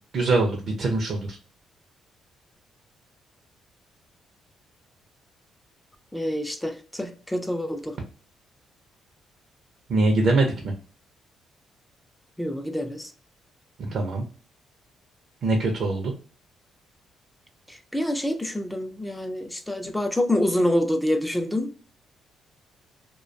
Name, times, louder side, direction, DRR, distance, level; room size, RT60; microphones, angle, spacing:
voice 1, 0.1-1.3 9.9-10.7 13.8-14.2 15.4-16.1, right 2 dB, 65° right, 0.5 m, -23 dB
voice 2, 6.1-8.0 12.4-13.1 17.7-21.7, left 1 dB, 5° left, 0.4 m, -26 dB
2.3 x 2.2 x 2.4 m
cardioid pair, 90°, 0 cm